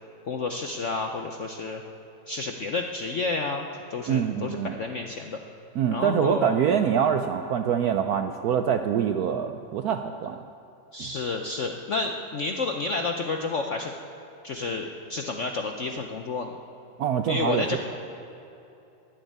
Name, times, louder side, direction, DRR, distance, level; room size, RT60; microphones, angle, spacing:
voice 1, 0.3-1.8 2.3-5.4 5.9-6.6 10.9-13.9 14.4-16.5 17.3-17.8, left 3 dB, 65° left, 3 dB, 0.7 m, -30 dB
voice 2, 4.1-4.8 5.7-10.4 11.0-11.1 17.0-17.8, right 8 dB, 70° right, 7 dB, 0.9 m, -25 dB
11.5 x 10.5 x 9.3 m, 2.8 s
omnidirectional pair, 2.2 m